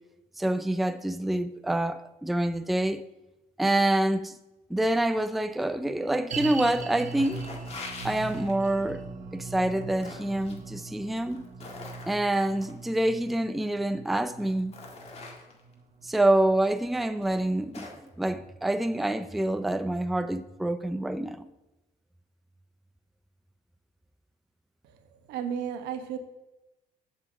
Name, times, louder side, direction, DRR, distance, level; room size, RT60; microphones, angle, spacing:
voice 1, 0.4-3.0 3.6-4.4 4.7-7.4 8.0-9.0 9.3-11.5 12.1-14.7 16.0-17.9 18.2-21.5, right 1 dB, ahead, 0.4 m, -26 dB
sound 1, 6.3-17.6 17.8-17.9 18.6-18.7, right 5 dB, 45° right, 1.1 m, -41 dB
sound 2, 6.4-6.8 7.1-8.8 9.6-10.6 11.2-12.7 13.8-13.9 14.4-15.7 16.6-16.7 17.2-18.1, left 3 dB, 40° left, 1.9 m, -44 dB
voice 2, 24.8-26.2, right 8 dB, 85° right, 1.1 m, -34 dB
7.8 x 5.6 x 7.3 m
cardioid pair, 110°, 17 cm